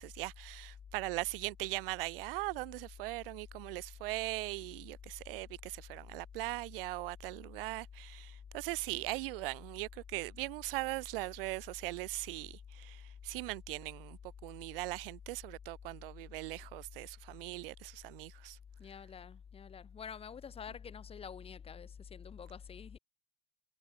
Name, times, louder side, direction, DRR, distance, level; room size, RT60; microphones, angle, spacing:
voice 1, 0.0-18.6, right 22 dB, 60° right, 0.5 m, -40 dB
voice 2, 18.8-23.0, left 7 dB, 20° left, 0.7 m, -47 dB
hypercardioid pair, 80°, 32 cm